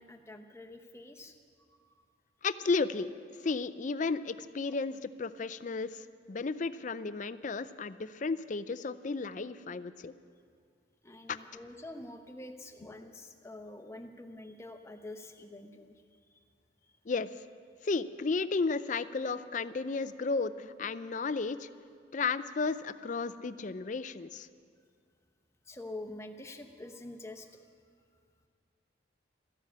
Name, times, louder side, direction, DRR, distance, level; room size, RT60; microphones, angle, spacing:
voice 1, 0.0-1.3 1.7-1.9 11.0-16.0 16.3-16.4 25.7-27.6, left 2 dB, 15° left, 5 dB, 0.9 m, -46 dB
voice 2, 2.4-3.1 3.4-10.1 11.3-11.4 17.1-17.3 17.8-21.7 22.1-24.5, left 4 dB, 40° left, 13 dB, 0.4 m, -33 dB
14.0 x 12.0 x 8.6 m, 2.1 s
head